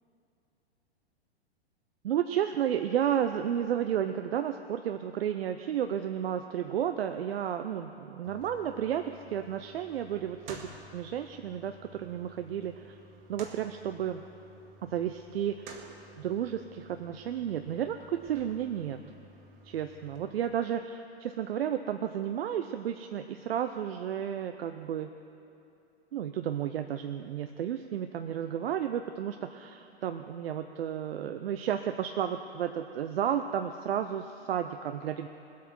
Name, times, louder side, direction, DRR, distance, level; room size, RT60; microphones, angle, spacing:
voice 1, 2.0-10.6 10.9-13.0 13.3-14.2 14.8-15.8 16.2-19.0 19.7-25.1 26.1-35.3, right 9 dB, 65° right, 8 dB, 0.6 m, -32 dB
sound 1, 8.2-20.2, right 2 dB, 45° right, 1.9 m, -52 dB
19.5 x 8.4 x 6.1 m, 2.7 s
figure-of-eight pair, 110°, 33 cm